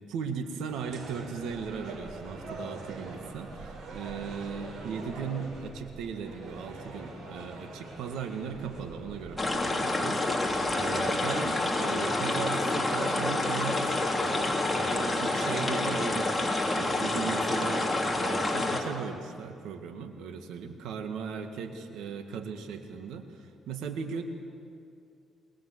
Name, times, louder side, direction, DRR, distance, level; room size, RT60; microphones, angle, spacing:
voice 1, 0.1-17.9 18.1-24.2, right 6 dB, 90° right, 6 dB, 2.0 m, -37 dB
sound 1, 0.7-9.6, right 2 dB, 65° right, 5.7 m, -43 dB
sound 2, 9.4-18.8, left 2 dB, 15° left, 3.3 m, -28 dB
23.0 x 20.0 x 8.1 m, 2.4 s
cardioid pair, 90°, 0 cm